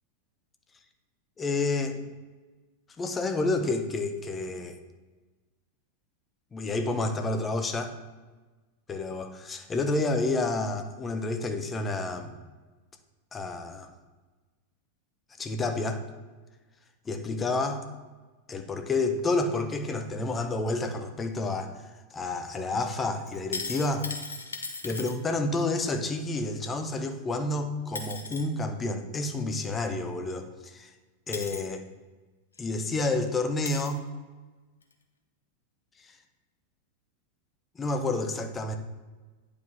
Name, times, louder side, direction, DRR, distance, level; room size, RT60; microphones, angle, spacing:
voice 1, 1.4-2.0 3.0-4.8 6.5-7.9 8.9-12.3 13.3-13.9 15.4-16.0 17.1-17.9 18.5-21.7 22.1-24.1 24.8-30.9 31.3-31.8 32.6-34.0 37.8-38.8, left 2 dB, 20° left, 6 dB, 0.8 m, -29 dB
sound 1, 23.3-25.1 27.4-27.5 28.0-28.4 30.3-30.4 31.3-31.6 32.6-32.7 33.0-33.1 33.7-34.0 34.8-34.9, left 4 dB, 75° left, 0.7 m, -37 dB
9.3 x 5.1 x 3.4 m, 1.3 s
figure-of-eight pair, 90°, 0 cm